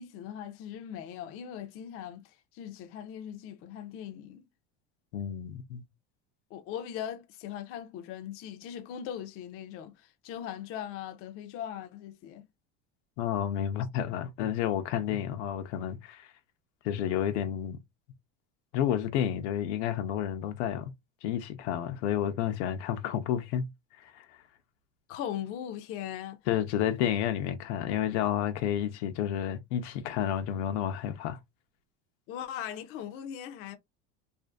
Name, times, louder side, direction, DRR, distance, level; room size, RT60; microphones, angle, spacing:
voice 1, 0.0-4.4 6.5-12.5 25.1-26.4 32.3-33.8, left 10 dB, 40° left, 0.4 m, -40 dB
voice 2, 5.1-5.8 13.2-16.3 16.8-17.8 18.7-20.9 21.2-23.7 24.0-24.3 26.5-31.4, left 10 dB, 85° left, 0.6 m, -30 dB
2.6 x 2.4 x 2.3 m
cardioid pair, 145°, 33 cm